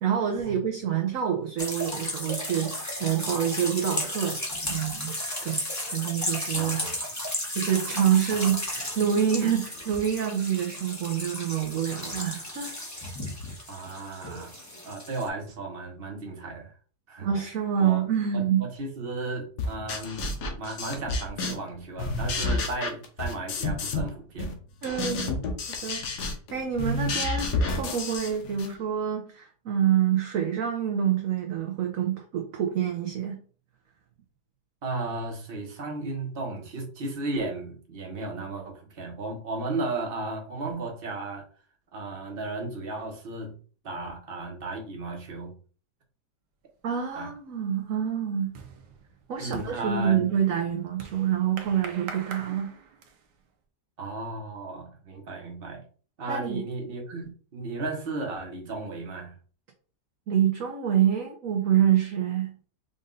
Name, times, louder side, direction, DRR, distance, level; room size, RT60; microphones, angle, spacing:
voice 1, 0.0-4.4 4.7-5.2 5.4-5.6 5.9-6.8 7.5-12.7 17.2-18.6 24.8-25.5 25.8-26.0 26.5-33.4 46.8-48.5 49.3-52.7 56.3-56.6 60.3-62.5, right 9 dB, 60° right, 2 dB, 1.0 m, -26 dB
sound 1, 1.6-15.3, left 1 dB, 10° left, 1.0 m, -34 dB
voice 2, 6.5-7.0 8.3-8.5 13.7-14.5 14.8-16.7 17.1-17.3 17.8-18.0 18.3-20.3 20.6-24.6 26.8-27.0 34.8-41.4 41.9-43.6 43.8-45.5 47.1-47.3 49.4-50.3 54.0-55.8 56.2-59.3, right 2 dB, 35° right, 1 dB, 1.2 m, -35 dB
sound 2, 19.6-21.7 22.0-24.1 24.4-28.7, left 3 dB, 75° left, 1.5 m, -30 dB
sound 3, 46.9-47.3 47.6-53.4, right 5 dB, 85° right, 1.4 m, -44 dB
5.3 x 2.6 x 3.8 m, 0.40 s
omnidirectional pair, 1.8 m